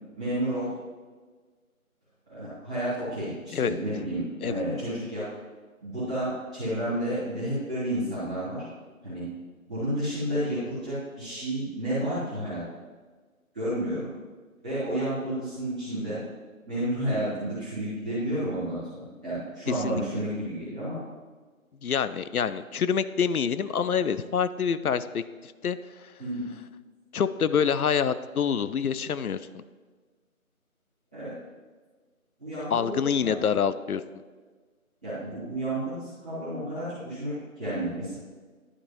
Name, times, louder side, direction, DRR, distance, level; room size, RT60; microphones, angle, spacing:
voice 1, 0.2-0.7 2.3-5.3 5.8-8.6 9.0-9.3 9.7-12.6 13.5-14.1 14.6-16.2 16.7-21.0 26.2-26.4 31.1-31.3 32.4-33.4 35.0-38.1, right 1 dB, 5° right, -19 dB, 1.4 m, -31 dB
voice 2, 19.7-20.0 21.8-25.8 27.1-29.6 32.7-34.0, left 7 dB, 90° left, 13 dB, 0.5 m, -26 dB
11.0 x 5.3 x 3.0 m, 1.4 s
figure-of-eight pair, 170°, 43 cm